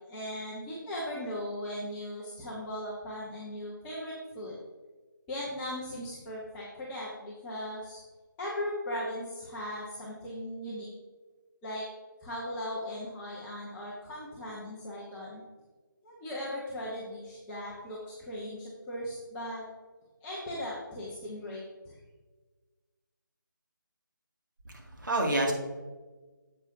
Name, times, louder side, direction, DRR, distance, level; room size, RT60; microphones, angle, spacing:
voice 1, 0.1-4.6 5.3-8.0 8.4-10.9 11.6-11.8 12.2-15.4 16.0-19.6 20.2-22.0, left 1 dB, 10° left, -8 dB, 1.1 m, -38 dB
voice 2, 24.6-25.5, right 1 dB, 70° right, 0 dB, 2.3 m, -28 dB
9.4 x 8.2 x 2.8 m, 1.3 s
figure-of-eight pair, 160°, 11 cm